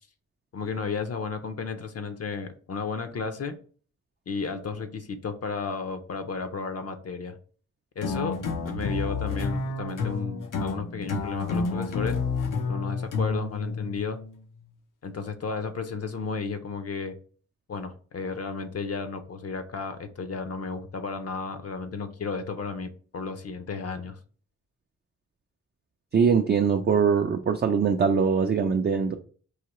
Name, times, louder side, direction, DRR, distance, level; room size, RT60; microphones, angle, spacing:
voice 1, 0.5-3.6 4.3-7.4 8.0-8.4 8.6-12.2 12.7-14.2 15.0-17.1 17.7-24.2, left 5 dB, 55° left, 8 dB, 0.6 m, -33 dB
sound 1, 8.0-14.4, left 4 dB, 90° left, 0.7 m, -30 dB
voice 2, 26.1-29.1, right 6 dB, 35° right, 5 dB, 0.4 m, -22 dB
4.7 x 2.8 x 3.0 m, 0.42 s
wide cardioid pair, 105°, 31 cm